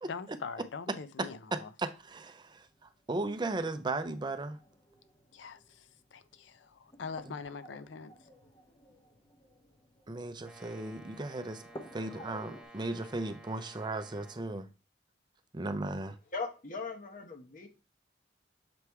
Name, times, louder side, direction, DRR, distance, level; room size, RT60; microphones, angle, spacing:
voice 1, 0.0-1.7 5.3-8.1, left 5 dB, 80° left, 0.5 m, -43 dB
voice 2, 1.2-4.6 10.1-11.6 11.9-14.7 15.5-16.2, right 2 dB, 25° right, 0.5 m, -36 dB
sound 1, 2.0-12.6, equal, 20° left, 0.8 m, -55 dB
Brass instrument, 10.4-14.5, right 2 dB, 5° right, 0.8 m, -54 dB
voice 3, 16.3-17.7, left 4 dB, 45° left, 1.0 m, -39 dB
6.9 x 3.3 x 4.6 m
head